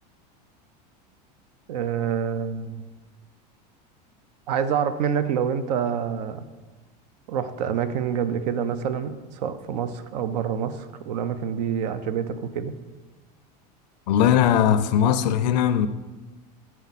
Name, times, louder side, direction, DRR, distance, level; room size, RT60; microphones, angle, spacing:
voice 1, 1.7-2.9 4.5-6.5 7.3-12.7, right 8 dB, 75° right, 0.5 m, -27 dB
voice 2, 14.1-15.9, left 9 dB, 85° left, 0.5 m, -19 dB
8.2 x 4.6 x 4.1 m
supercardioid pair, 115°, 21 cm